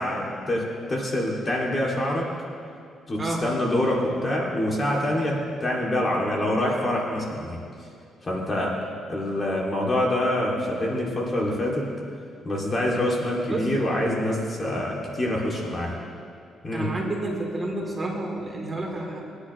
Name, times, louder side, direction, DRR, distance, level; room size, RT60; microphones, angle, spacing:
voice 1, 0.0-2.3 3.1-7.6 8.2-8.8 9.1-11.9 12.4-16.0 16.6-16.9, left 1 dB, 30° left, -3 dB, 2.4 m, -26 dB
voice 2, 16.7-19.2, right 2 dB, 30° right, -1 dB, 2.9 m, -30 dB
21.0 x 10.0 x 3.1 m, 2.4 s
cardioid pair, 90°, 0 cm